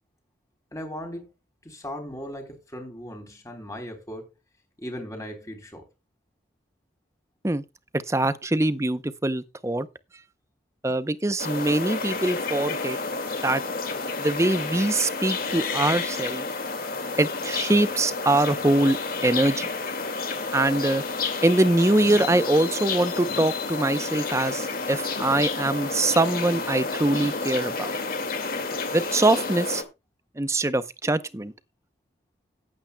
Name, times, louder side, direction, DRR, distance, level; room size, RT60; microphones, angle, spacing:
voice 1, 0.7-1.3 1.6-4.3 4.8-5.9, equal, 15° left, 3.6 m, -37 dB
voice 2, 7.9-9.9 10.8-13.0 13.4-13.6 14.2-16.4 17.2-19.0 19.2-19.7 20.5-21.0 21.4-27.9 28.9-29.8 30.4-31.5, right 2 dB, 15° right, 0.6 m, -23 dB
sound 1, 11.4-29.8, left 4 dB, 50° left, 2.1 m, -30 dB
18.5 x 8.7 x 2.2 m
head